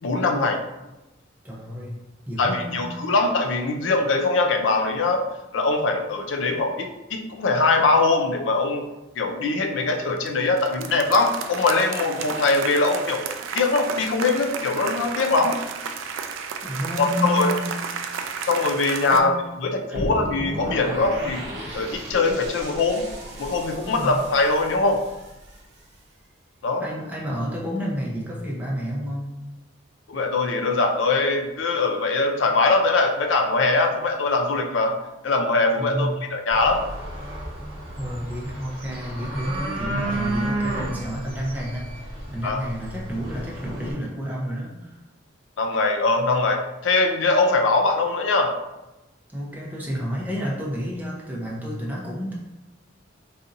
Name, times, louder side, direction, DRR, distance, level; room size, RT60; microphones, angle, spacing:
voice 1, 0.0-0.6 2.4-5.3 5.5-8.9 9.2-15.6 17.0-17.5 18.4-21.4 21.7-23.1 23.4-25.0 26.6-26.9 30.1-35.0 35.2-36.8 42.4-42.6 45.6-48.6, left 3 dB, 75° left, 4 dB, 0.4 m, -22 dB
voice 2, 1.4-2.9 16.6-17.8 19.1-19.3 23.8-24.2 26.8-29.3 35.8-36.2 38.0-45.0 49.3-52.3, equal, 10° right, -5 dB, 0.7 m, -30 dB
sound 1, 9.9-10.3 10.6-19.2, right 6 dB, 80° right, 0.3 m, -33 dB
sound 2, 19.9-26.0, equal, 60° right, 0.8 m, -35 dB
sound 3, 36.5-43.9, right 1 dB, 30° right, 1.2 m, -32 dB
4.1 x 2.6 x 2.5 m, 1.0 s
head